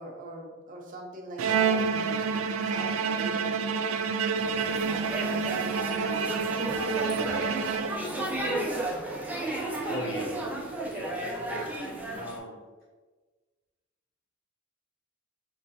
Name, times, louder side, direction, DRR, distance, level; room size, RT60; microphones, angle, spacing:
voice 1, 0.0-2.3 2.6-3.6 4.5-6.9, right 1 dB, 40° right, -1 dB, 0.8 m, -42 dB
Bowed string instrument, 1.4-8.3, right 5 dB, 90° right, 0.3 m, -28 dB
sound 1, 4.4-12.4, right 2 dB, 10° right, 0.6 m, -33 dB
voice 2, 9.9-11.8 12.1-12.6, left 1 dB, 65° left, -2 dB, 0.9 m, -39 dB
5.0 x 3.2 x 2.7 m, 1.3 s
head